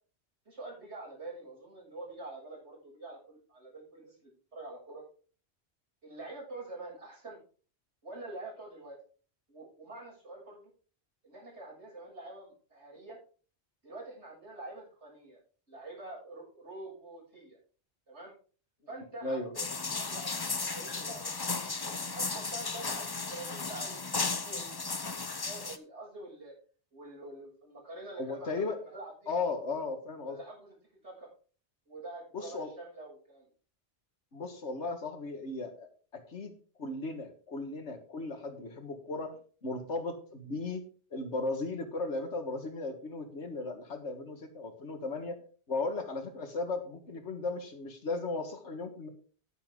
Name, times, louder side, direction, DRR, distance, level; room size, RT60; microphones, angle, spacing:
voice 1, 0.5-5.0 6.0-7.4 8.0-9.0 9.5-10.7 11.2-13.2 13.8-15.4 15.7-17.6 18.1-18.3 18.9-19.7 20.0-21.3 21.8-24.0 24.4-24.8 25.4-26.5 26.9-28.6 28.9-29.3 30.2-30.8 31.0-31.3 31.9-33.5, right 2 dB, 80° right, -4 dB, 7.4 m, -46 dB
sound 1, 19.6-25.8, left 4 dB, 25° left, 0.6 m, -35 dB
voice 2, 28.2-28.8 29.3-30.4 32.3-32.7 34.3-36.5 36.8-40.8 41.1-45.4 45.7-49.1, left 3 dB, 80° left, 7 dB, 2.0 m, -36 dB
10.5 x 10.0 x 3.8 m, 0.39 s
omnidirectional pair, 1.1 m